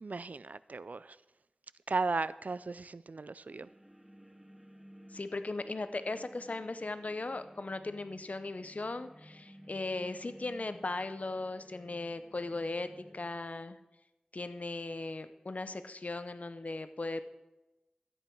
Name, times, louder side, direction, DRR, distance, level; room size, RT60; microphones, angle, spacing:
voice 1, 0.0-1.2 1.9-3.7, right 3 dB, 70° right, 17 dB, 0.3 m, -36 dB
sound 1, 3.5-13.4, equal, 5° right, 0.8 m, -56 dB
voice 2, 5.1-12.9 13.1-13.8 14.3-17.2, left 2 dB, 60° left, 11 dB, 0.7 m, -38 dB
13.5 x 9.1 x 4.5 m, 1.0 s
wide cardioid pair, 60°, 3 cm